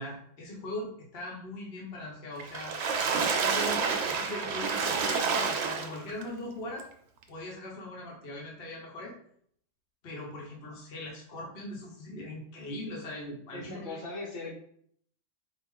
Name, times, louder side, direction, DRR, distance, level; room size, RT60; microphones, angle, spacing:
voice 1, 0.0-2.7 3.4-6.8 7.3-9.1 10.0-14.0, left 1 dB, 55° left, -2 dB, 1.1 m, -40 dB
Water / Splash splatter, 2.4-6.2 6.8-6.9 7.2-7.3, right 5 dB, 65° right, 0.8 m, -29 dB
voice 2, 13.5-14.5, left 2 dB, 90° left, -6 dB, 1.7 m, -39 dB
4.4 x 2.4 x 3.6 m, 0.65 s
omnidirectional pair, 1.3 m